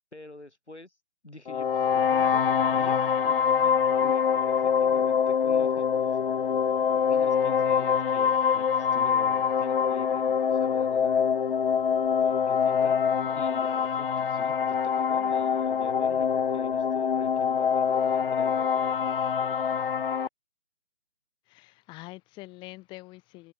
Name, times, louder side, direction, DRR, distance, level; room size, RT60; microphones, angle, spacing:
voice 1, 0.1-1.0 1.2-2.5 2.7-6.2 7.1-11.2 12.2-13.0 13.3-18.9, left 1 dB, 90° left, 3.5 m, -47 dB
sound 1, 1.5-20.3, left 7 dB, 55° left, 0.7 m, -25 dB
voice 2, 21.5-23.5, left 21 dB, 15° left, 1.7 m, -45 dB
figure-of-eight pair, 140°, 33 cm